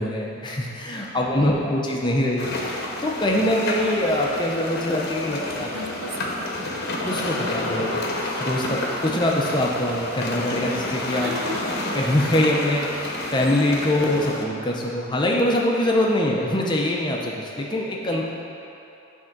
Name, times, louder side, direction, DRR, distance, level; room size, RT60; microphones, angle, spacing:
voice 1, 0.0-5.7 7.0-8.0 8.4-11.3 11.9-18.2, left 1 dB, 20° left, -2 dB, 0.7 m, -23 dB
sound 1, 2.4-14.4, left 1 dB, 45° left, 1.0 m, -30 dB
voice 2, 5.7-6.3 11.2-11.7, equal, 70° right, 2 dB, 0.8 m, -34 dB
10.5 x 3.6 x 5.9 m, 2.9 s
head